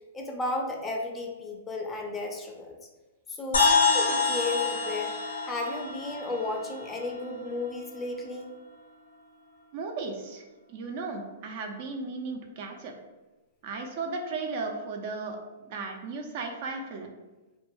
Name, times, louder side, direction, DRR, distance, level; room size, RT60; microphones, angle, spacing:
voice 1, 0.1-2.8 3.3-5.1 5.4-8.5, left 2 dB, 15° left, 1 dB, 0.4 m, -34 dB
sound 1, 3.5-7.3, left 4 dB, 75° left, 0.5 m, -26 dB
voice 2, 9.7-10.4 10.7-12.9 13.6-17.1, right 3 dB, 50° right, 3 dB, 0.4 m, -35 dB
2.2 x 2.1 x 3.0 m, 1.1 s
hypercardioid pair, 115°, 0 cm